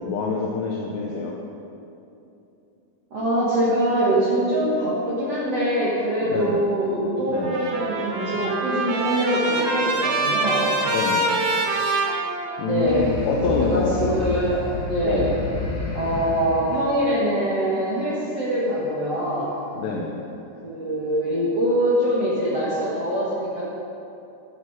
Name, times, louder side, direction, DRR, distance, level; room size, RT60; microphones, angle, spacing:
voice 1, 0.0-1.4 6.3-6.6 7.3-7.6 10.9-11.3 12.6-14.2 15.0-15.3 19.8-20.2, left 4 dB, 75° left, -1 dB, 2.6 m, -26 dB
voice 2, 3.1-10.7 12.6-13.1 13.5-15.3 15.9-19.5 20.6-23.6, right 1 dB, 80° right, -8 dB, 1.4 m, -23 dB
Trumpet, 7.3-12.9, right 2 dB, 65° right, 2.5 m, -25 dB
sound 1, 12.8-17.8, left 3 dB, 55° left, 2.2 m, -31 dB
12.0 x 11.0 x 4.9 m, 2.8 s
omnidirectional pair, 5.8 m